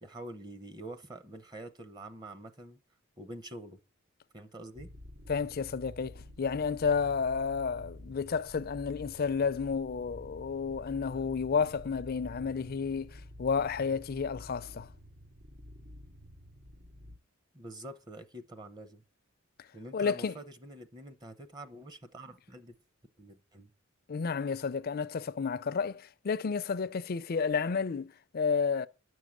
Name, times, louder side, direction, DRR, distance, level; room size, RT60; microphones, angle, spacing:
voice 1, 0.0-2.8 3.2-3.8 4.3-4.9 17.5-19.0 19.7-22.7 23.2-23.7, right 1 dB, 20° right, 0.7 m, -46 dB
sound 1, 4.7-17.2, left 1 dB, 50° right, 2.4 m, -50 dB
voice 2, 5.3-14.9 19.6-19.7 19.9-20.3 24.1-28.9, left 5 dB, 45° left, 0.4 m, -31 dB
9.8 x 6.3 x 7.2 m
head